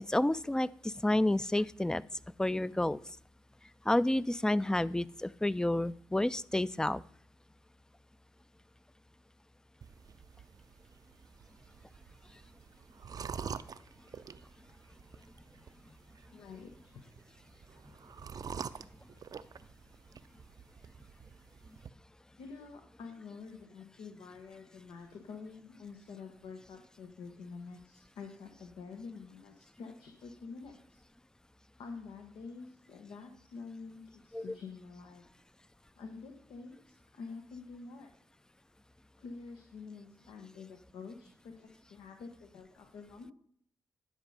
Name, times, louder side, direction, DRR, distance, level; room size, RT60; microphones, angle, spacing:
voice 1, 0.0-2.0 2.4-3.0 3.9-7.0 34.3-34.4, left 1 dB, 10° left, 19 dB, 0.4 m, -30 dB
sound 1, 9.8-21.9, right 6 dB, 55° right, 0.5 m, -47 dB
voice 2, 16.3-17.0 22.4-31.0 31.8-35.2 36.0-38.1 39.2-43.3, left 4 dB, 85° left, 4 dB, 1.0 m, -48 dB
11.0 x 5.2 x 5.4 m, 0.62 s
supercardioid pair, 50°, 8 cm